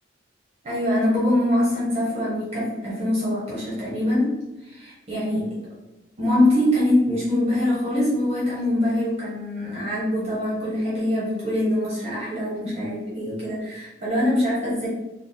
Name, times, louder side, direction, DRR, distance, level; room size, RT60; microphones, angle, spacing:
voice 1, 0.6-4.3 4.7-5.5 6.2-14.9, left 1 dB, 30° right, -7 dB, 1.0 m, -23 dB
3.5 x 2.1 x 3.9 m, 1.0 s
head